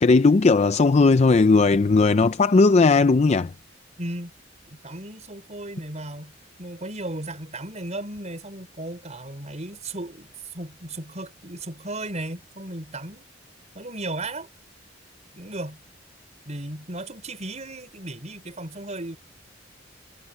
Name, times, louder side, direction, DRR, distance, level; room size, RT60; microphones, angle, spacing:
voice 1, 0.0-3.5, left 3 dB, 35° left, 0.4 m, -17 dB
voice 2, 4.0-4.3 4.7-10.3 10.5-13.2 13.7-14.5 15.3-15.8 16.5-19.2, right 1 dB, 35° right, 5.6 m, -35 dB
head